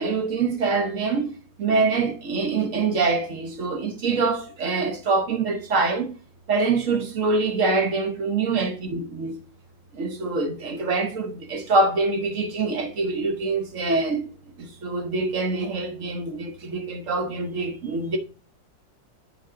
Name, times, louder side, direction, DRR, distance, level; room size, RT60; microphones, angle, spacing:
voice 1, 0.0-1.3 1.6-6.1 6.5-9.4 10.0-14.3 14.8-18.2, right 3 dB, 50° right, 1.1 m, -24 dB
8.1 x 4.6 x 3.7 m
omnidirectional pair, 2.1 m